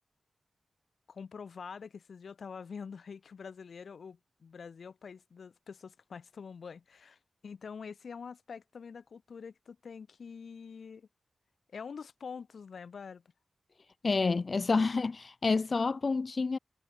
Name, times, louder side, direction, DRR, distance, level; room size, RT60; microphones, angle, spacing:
voice 1, 1.1-11.1 11.7-13.2, left 6 dB, 75° left, 2.5 m, -46 dB
voice 2, 14.0-16.6, left 4 dB, 50° left, 0.8 m, -28 dB
cardioid pair, 60°, 0 cm